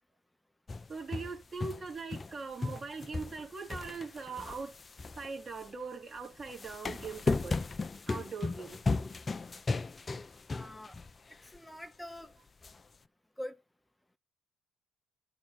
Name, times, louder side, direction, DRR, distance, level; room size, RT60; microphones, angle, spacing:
sound 1, 0.7-2.4 2.6-5.7 6.4-11.1 11.5-11.6 12.6-12.7, left 3 dB, 35° left, 0.8 m, -36 dB
voice 1, 0.9-4.8 5.1-7.6 8.1-8.8, right 4 dB, 45° right, 3.3 m, -41 dB
voice 2, 10.5-11.0 11.5-12.3 13.4-13.6, left 1 dB, 5° left, 0.9 m, -44 dB
13.0 x 5.8 x 4.4 m
hypercardioid pair, 60°, 0 cm